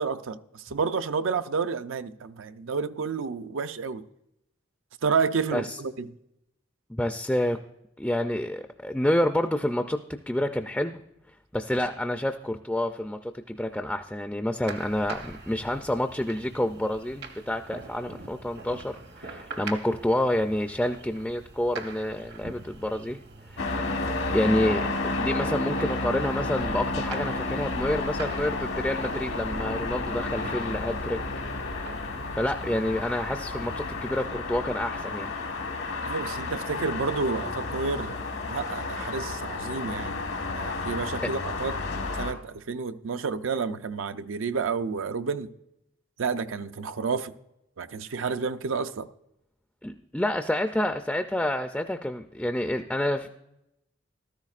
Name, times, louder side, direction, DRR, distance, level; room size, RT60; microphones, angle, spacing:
voice 1, 0.0-4.0 5.0-6.1 36.0-38.2 38.5-40.2 40.5-41.8 42.2-45.5 46.2-47.3 47.8-49.1, right 5 dB, 75° right, 0.5 m, -30 dB
voice 2, 6.9-7.6 8.0-10.0 10.3-11.0 11.5-23.2 23.5-23.9 24.3-31.2 32.3-35.3 41.2-41.3 49.8-53.3, left 1 dB, 5° left, 0.3 m, -28 dB
sound 1, 14.7-34.3, right 3 dB, 55° right, 0.9 m, -43 dB
sound 2, 23.6-42.3, left 3 dB, 80° left, 1.2 m, -31 dB
14.5 x 13.0 x 2.4 m
head